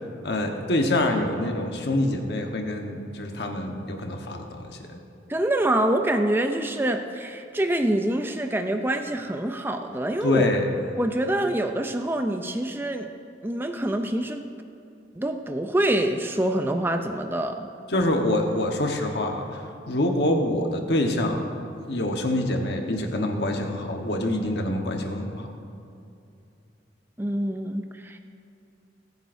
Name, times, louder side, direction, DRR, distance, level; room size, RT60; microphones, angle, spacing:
voice 1, 0.2-5.0 10.2-10.8 17.9-21.5 21.9-25.5, left 1 dB, 65° left, 2 dB, 1.3 m, -26 dB
voice 2, 5.3-10.5 11.0-13.1 13.4-14.5 15.1-17.7 27.2-28.2, right 1 dB, 10° right, 6 dB, 0.5 m, -26 dB
21.5 x 9.3 x 2.7 m, 2.6 s
head